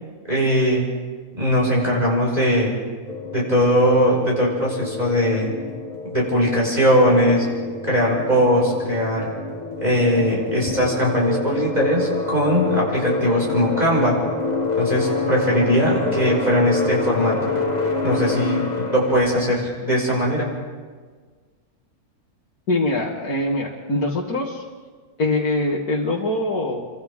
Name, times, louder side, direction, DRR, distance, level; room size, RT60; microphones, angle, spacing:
voice 1, 0.3-0.9 1.4-2.7 3.3-5.5 6.1-7.4 7.8-9.3 9.8-14.2 14.8-17.5 18.0-20.5, equal, 30° right, -4 dB, 5.9 m, -20 dB
sound 1, 3.1-19.6, left 3 dB, 30° left, 1.4 m, -27 dB
voice 2, 22.7-24.6 25.2-26.8, left 2 dB, 80° left, -3 dB, 2.4 m, -23 dB
29.0 x 24.5 x 3.7 m, 1.5 s
omnidirectional pair, 1.6 m